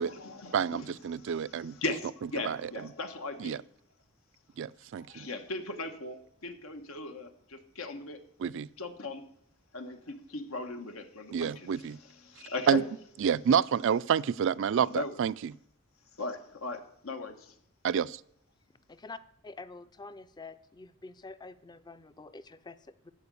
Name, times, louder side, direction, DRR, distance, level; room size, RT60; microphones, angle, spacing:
voice 1, 0.0-3.6 5.0-8.2 8.8-9.2 9.7-12.8 14.8-15.2 16.2-17.5, left 3 dB, 80° left, 1.4 m, -39 dB
voice 2, 0.5-1.8 2.5-2.7 3.4-3.6 4.6-5.3 8.4-8.7 11.3-12.0 12.7-12.8 13.2-15.5 17.8-18.2, right 7 dB, 60° right, 0.3 m, -28 dB
voice 3, 19.4-23.1, left 3 dB, 20° left, 0.5 m, -47 dB
13.5 x 5.0 x 8.3 m
head